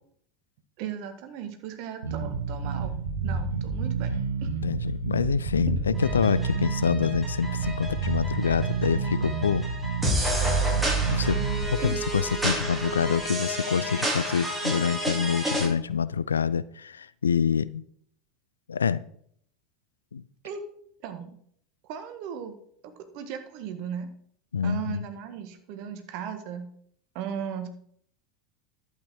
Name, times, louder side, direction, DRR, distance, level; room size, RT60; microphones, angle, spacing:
voice 1, 0.8-2.9 3.2-4.1 4.4-4.5 11.8-12.0 20.4-20.6 21.0-21.4 21.8-22.6 22.8-24.1 24.6-26.7 27.1-27.7, right 8 dB, 55° right, 1.6 m, -36 dB
Bass guitar, 2.0-11.6, right 5 dB, 80° right, 1.8 m, -29 dB
voice 2, 4.6-9.6 11.1-11.4 11.7-17.8 18.7-19.0 20.1-20.2 24.5-25.0, left 6 dB, 80° left, 0.4 m, -26 dB
sound 1, 5.9-15.6, right 1 dB, 5° right, 5.0 m, -30 dB
11.5 x 8.3 x 4.7 m
figure-of-eight pair, 80°, 0 cm